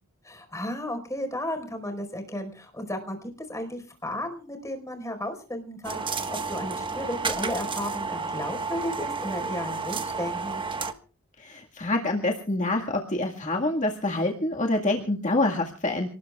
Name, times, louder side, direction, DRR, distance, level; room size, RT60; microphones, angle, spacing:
voice 1, 0.2-10.6, left 1 dB, 15° left, 5 dB, 4.8 m, -34 dB
sound 1, 5.8-10.9, right 4 dB, 25° right, 1.4 m, -31 dB
voice 2, 11.4-16.1, left 2 dB, 35° left, 1 dB, 1.9 m, -26 dB
29.0 x 19.5 x 2.4 m, 0.40 s
head